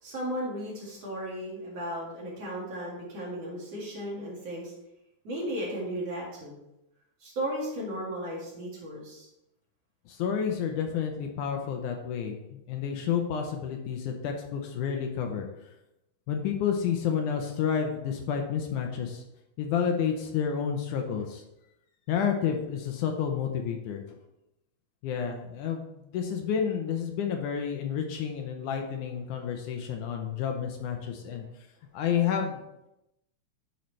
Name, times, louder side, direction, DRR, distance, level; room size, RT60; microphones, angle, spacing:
voice 1, 0.0-4.7 5.2-6.6 7.2-9.3, equal, 50° right, -5 dB, 2.9 m, -35 dB
voice 2, 10.1-15.5 16.3-19.2 19.6-21.4 22.1-24.2 25.0-31.4 31.9-32.6, left 7 dB, 75° left, 3 dB, 2.1 m, -30 dB
10.0 x 5.5 x 3.2 m, 0.88 s
omnidirectional pair, 3.8 m